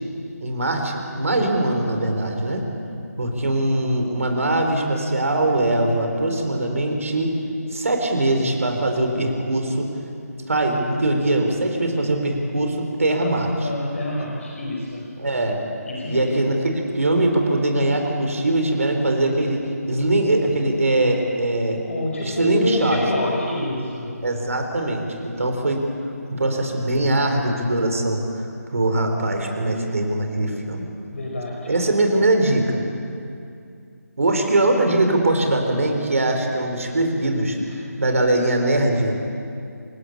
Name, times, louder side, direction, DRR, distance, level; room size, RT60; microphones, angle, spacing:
voice 1, 0.4-2.7 3.2-7.3 7.7-9.9 10.5-13.5 15.2-15.6 16.1-21.8 22.2-23.0 24.2-25.8 26.3-28.5 28.7-30.9 31.7-32.8 34.2-39.2, right 1 dB, 60° right, 4 dB, 4.3 m, -21 dB
voice 2, 13.6-15.1 15.9-16.3 21.8-24.1 31.1-31.7, left 1 dB, 55° left, -2 dB, 4.9 m, -27 dB
27.5 x 16.5 x 8.7 m, 2.5 s
figure-of-eight pair, 150°, 9 cm